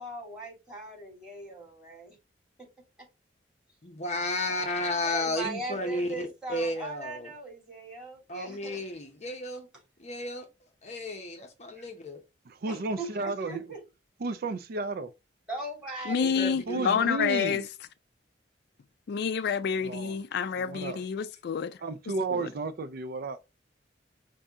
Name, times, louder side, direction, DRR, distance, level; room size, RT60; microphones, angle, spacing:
voice 1, 0.0-2.2 2.6-2.7 5.0-8.8 11.7-11.9 12.7-13.8 15.5-16.5, right 2 dB, 5° right, 3.0 m, -39 dB
voice 2, 3.8-7.3 8.3-9.7 10.0-10.5 10.8-12.2 16.4-17.0, left 2 dB, 40° left, 0.8 m, -33 dB
voice 3, 12.5-13.6 14.2-15.1 16.7-17.6 19.8-20.2 20.6-21.0 21.8-23.4, right 3 dB, 55° right, 0.4 m, -33 dB
voice 4, 16.1-17.6 19.1-21.8 22.3-22.5, left 7 dB, 65° left, 0.3 m, -28 dB
5.3 x 2.6 x 3.5 m
head